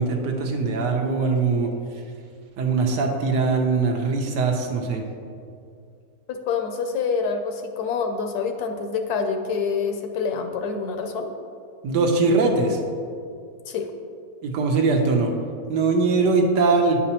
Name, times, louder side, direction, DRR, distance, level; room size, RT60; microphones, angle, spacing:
voice 1, 0.0-1.7 2.6-5.0 11.8-12.8 14.4-15.3 15.7-17.0, right 4 dB, 90° right, 2 dB, 1.4 m, -21 dB
voice 2, 6.3-11.3 13.6-13.9, left 5 dB, 75° left, 5 dB, 1.0 m, -26 dB
9.6 x 5.1 x 2.9 m, 2.4 s
omnidirectional pair, 1.8 m